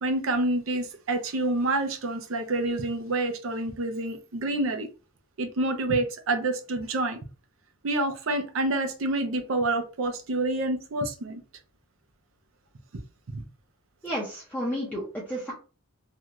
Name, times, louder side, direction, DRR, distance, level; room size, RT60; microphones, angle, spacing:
voice 1, 0.0-4.9 5.4-7.2 7.8-11.4 13.3-13.4, right 2 dB, 75° right, 0.6 m, -28 dB
voice 2, 14.0-15.5, equal, 10° left, 0.7 m, -31 dB
2.5 x 2.3 x 2.9 m
head